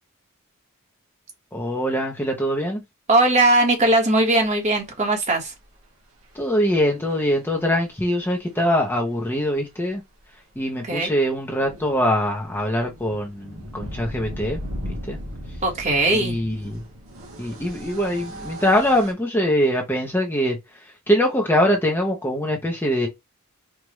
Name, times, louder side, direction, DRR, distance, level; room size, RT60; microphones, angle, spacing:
voice 1, 1.5-2.8 6.3-10.0 10.6-14.6 15.1-15.2 16.1-16.8 17.4-20.6 21.1-23.1, equal, 10° left, 0.8 m, -23 dB
voice 2, 3.1-5.5 10.8-11.1 15.6-16.4, right 2 dB, 35° right, 1.4 m, -19 dB
sound 1, 6.4-6.5 7.7-7.8 8.1-8.2 8.4-8.5 11.0-19.1, equal, 80° right, 1.8 m, -37 dB
4.7 x 2.5 x 3.0 m
head